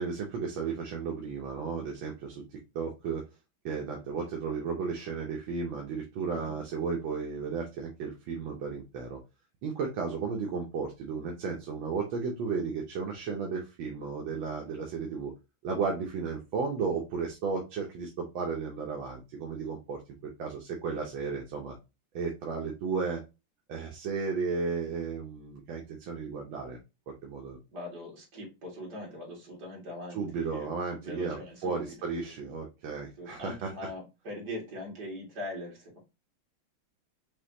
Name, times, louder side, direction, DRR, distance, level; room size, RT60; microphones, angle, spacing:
voice 1, 0.0-2.4 2.7-3.2 3.6-9.2 9.6-15.3 15.6-20.0 20.4-21.7 22.1-23.2 23.7-26.8 27.1-27.6 30.1-31.4 31.6-33.7, right 5 dB, 75° right, 0 dB, 1.6 m, -34 dB
voice 2, 27.7-32.3 33.2-36.0, left 1 dB, 55° right, -2 dB, 2.6 m, -41 dB
5.5 x 3.0 x 2.7 m, 0.26 s
omnidirectional pair, 2.2 m